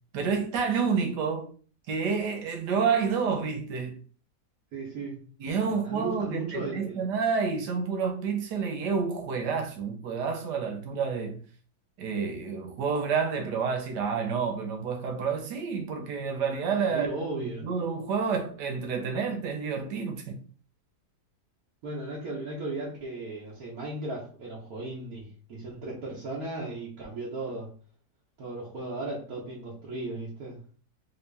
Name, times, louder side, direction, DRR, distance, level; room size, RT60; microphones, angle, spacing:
voice 1, 0.1-1.5 1.9-4.0 5.4-11.4 12.0-17.1 17.6-20.4, right 5 dB, 85° right, 1.5 m, -29 dB
voice 2, 4.7-5.2 5.7-7.0 16.9-17.7 21.8-27.7 28.4-30.6, right 2 dB, 65° right, 1.4 m, -36 dB
4.0 x 2.8 x 3.3 m
omnidirectional pair, 1.8 m